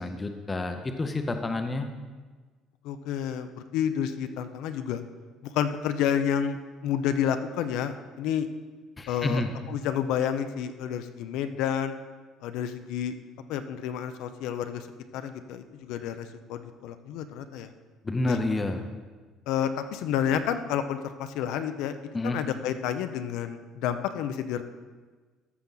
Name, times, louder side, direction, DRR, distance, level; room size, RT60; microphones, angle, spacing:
voice 1, 0.0-1.9 9.0-9.5 18.0-18.8 22.1-22.4, left 2 dB, 15° left, 6 dB, 0.6 m, -29 dB
voice 2, 2.8-5.0 5.4-8.5 9.1-9.4 9.7-12.0 12.4-13.1 13.5-14.9 15.1-17.7 18.3-18.4 19.5-24.6, left 9 dB, 70° left, 9 dB, 0.6 m, -30 dB
14.0 x 6.0 x 3.9 m, 1.4 s
cardioid pair, 175°, 0 cm